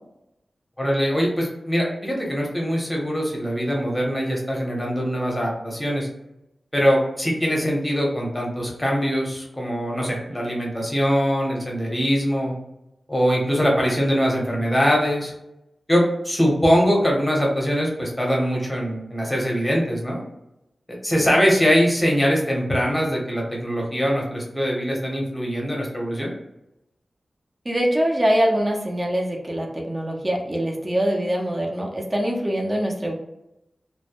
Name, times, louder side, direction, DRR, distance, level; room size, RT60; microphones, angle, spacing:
voice 1, 0.8-6.1 6.7-12.5 13.1-15.3 15.9-20.2 21.0-26.3, equal, 10° left, -2 dB, 0.8 m, -22 dB
voice 2, 27.7-33.1, equal, 25° right, 0 dB, 0.5 m, -23 dB
2.1 x 2.0 x 2.8 m, 0.87 s
wide cardioid pair, 110°, 0 cm